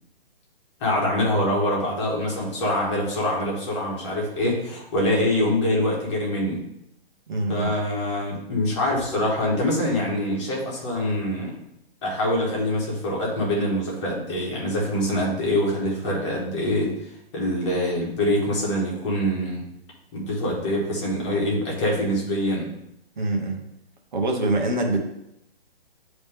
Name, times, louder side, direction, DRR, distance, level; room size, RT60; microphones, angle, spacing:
voice 1, 0.8-6.6 7.5-11.5 12.0-19.6 20.1-22.7, left 1 dB, 30° left, -3 dB, 1.6 m, -24 dB
voice 2, 7.3-7.7 23.2-23.6 24.1-25.0, right 2 dB, 50° right, 2 dB, 1.0 m, -24 dB
8.8 x 3.1 x 3.6 m, 0.81 s
hypercardioid pair, 165°, 31 cm